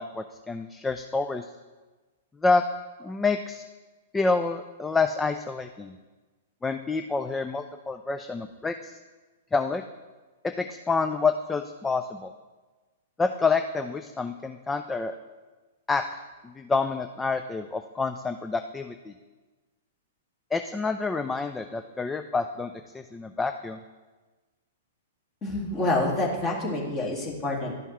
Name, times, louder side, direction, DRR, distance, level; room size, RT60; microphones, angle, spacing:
voice 1, 0.0-1.5 2.4-2.6 3.0-3.6 4.1-5.9 6.6-8.9 9.5-9.8 10.4-12.3 13.2-15.2 15.9-16.2 16.6-19.1 20.5-23.8, left 4 dB, 10° left, 8 dB, 0.3 m, -28 dB
voice 2, 25.4-27.7, left 2 dB, 25° left, -2 dB, 2.1 m, -27 dB
12.0 x 5.6 x 3.1 m, 1.3 s
figure-of-eight pair, 110°, 0 cm